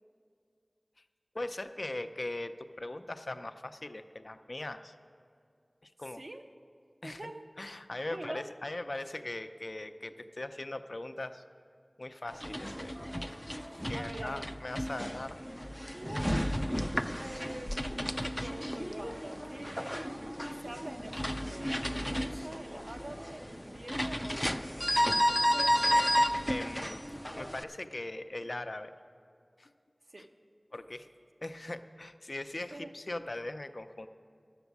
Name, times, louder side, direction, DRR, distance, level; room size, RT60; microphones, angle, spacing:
voice 1, 1.3-4.9 5.8-6.2 7.0-7.2 7.6-11.4 12.0-13.0 13.9-15.5 26.5-27.0 27.3-28.9 29.6-29.7 30.7-31.1 31.4-34.1, left 2 dB, 65° left, 9 dB, 0.5 m, -40 dB
voice 2, 7.0-7.5 8.1-8.5 13.7-14.5 15.9-16.7 17.2-20.4 20.6-25.0 30.1-30.3 32.7-32.9, right 1 dB, 65° right, 5 dB, 0.8 m, -45 dB
sound 1, 12.3-27.6, equal, 5° left, 0.4 m, -32 dB
11.5 x 7.1 x 8.1 m, 2.3 s
wide cardioid pair, 45°, 0 cm